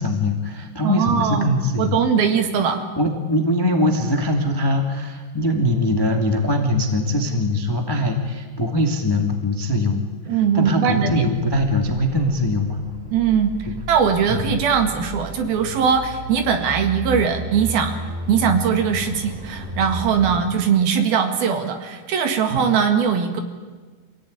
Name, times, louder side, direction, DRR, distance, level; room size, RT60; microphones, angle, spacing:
voice 1, 0.0-2.0 2.9-10.0 10.3-12.8 13.6-13.7 14.3-14.5 20.3-20.4 22.5-22.6, left 1 dB, 10° left, 3 dB, 1.1 m, -22 dB
voice 2, 0.8-2.8 10.3-11.1 13.1-13.5 13.9-17.9 18.3-23.4, right 7 dB, 65° right, 6 dB, 3.6 m, -20 dB
sound 1, 11.3-20.4, right 1 dB, 15° right, 4.6 m, -33 dB
26.5 x 17.0 x 9.8 m, 1.4 s
omnidirectional pair, 4.9 m